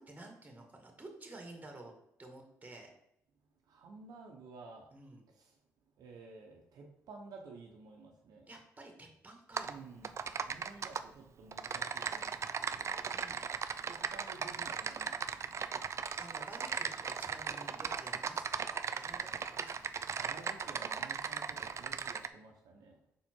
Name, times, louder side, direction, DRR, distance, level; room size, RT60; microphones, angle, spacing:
voice 1, 0.0-1.9 2.2-2.9 4.9-5.3 8.5-9.8 13.1-13.4 15.8-19.9, right 2 dB, 25° right, 3 dB, 1.8 m, -52 dB
voice 2, 3.6-5.0 5.3-5.6 6.0-8.5 9.6-10.1 10.4-13.1 13.8-15.5 20.2-23.0, right 3 dB, 75° right, 1 dB, 0.9 m, -53 dB
Typing, 9.6-9.7 10.0-11.0 11.5-22.3, right 6 dB, 45° right, 0.4 m, -37 dB
5.4 x 4.3 x 4.5 m, 0.76 s
supercardioid pair, 60°, 7 cm